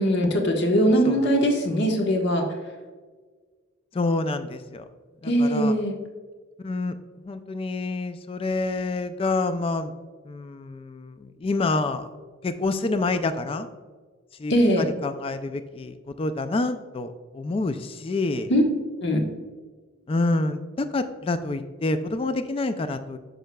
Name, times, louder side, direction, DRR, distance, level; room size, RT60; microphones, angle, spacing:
voice 1, 0.0-2.4 5.2-5.9 14.5-14.9 18.5-18.6 19.0-19.2, equal, 60° left, 2 dB, 1.2 m, -21 dB
voice 2, 3.9-4.8 5.2-5.7 6.6-7.0 7.2-9.9 10.3-12.1 12.4-13.7 14.4-18.5 20.1-23.2, left 2 dB, 30° left, 10 dB, 0.3 m, -27 dB
9.8 x 6.5 x 2.3 m, 1.4 s
head